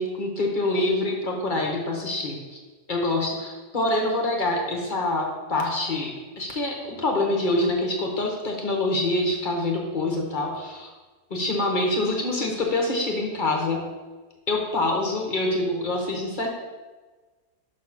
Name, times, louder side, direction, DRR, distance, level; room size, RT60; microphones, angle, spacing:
voice 1, 0.0-2.6 2.9-10.9 11.3-13.9 14.5-16.5, left 2 dB, 40° left, 0 dB, 0.9 m, -26 dB
5.7 x 3.9 x 5.9 m, 1.3 s
omnidirectional pair, 1.7 m